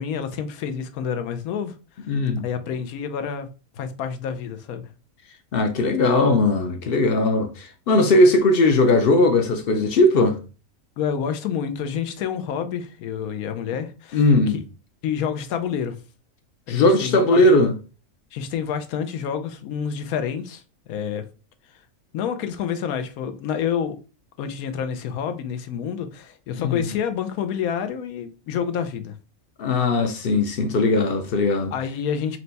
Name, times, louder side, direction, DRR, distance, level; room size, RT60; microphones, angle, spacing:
voice 1, 0.0-1.7 2.4-3.5 3.8-4.9 11.0-14.6 15.0-16.0 16.7-17.4 18.3-21.3 22.1-24.0 24.4-29.2 31.7-32.4, left 7 dB, 90° left, 1.1 m, -28 dB
voice 2, 2.1-2.5 5.5-10.4 14.1-14.6 16.7-17.8 26.6-26.7 29.6-31.7, left 2 dB, 60° left, 0.6 m, -18 dB
4.5 x 2.1 x 3.9 m
omnidirectional pair, 1.5 m